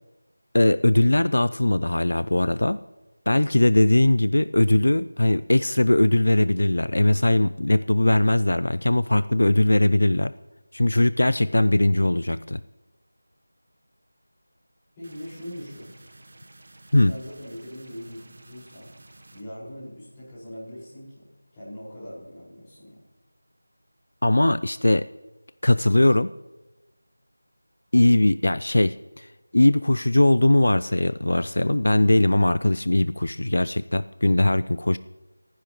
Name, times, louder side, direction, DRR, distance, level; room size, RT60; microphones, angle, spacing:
voice 1, 0.5-2.8 3.3-10.3 10.7-12.6 16.9-17.1 24.2-25.1 25.6-26.3 27.9-29.3 29.5-35.0, left 1 dB, 75° left, 16 dB, 0.4 m, -20 dB
voice 2, 15.0-15.9 17.1-18.9 19.3-21.2 21.5-23.0, equal, 10° left, -11 dB, 5.3 m, -41 dB
sound 1, 15.0-19.4, right 2 dB, 45° right, 1.1 m, -51 dB
28.5 x 10.0 x 3.1 m, 1.1 s
figure-of-eight pair, 175°, 0 cm